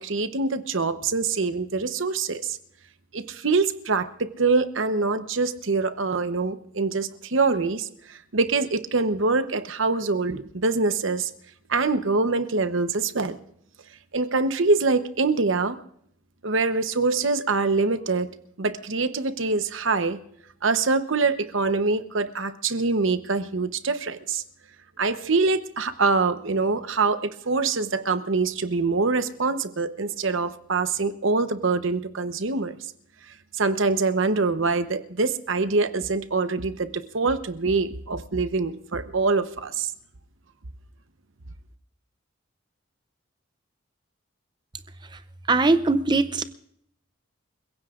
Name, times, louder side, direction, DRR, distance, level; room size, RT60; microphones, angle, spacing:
voice 1, 0.0-2.6 3.1-11.3 11.7-13.4 14.1-15.8 16.4-18.3 18.6-20.2 20.6-24.4 25.0-32.8 33.5-39.9, right 3 dB, 65° right, 11 dB, 0.9 m, -24 dB
voice 2, 45.5-46.4, right 3 dB, 20° right, 12 dB, 0.6 m, -20 dB
29.5 x 16.0 x 2.5 m, 0.69 s
head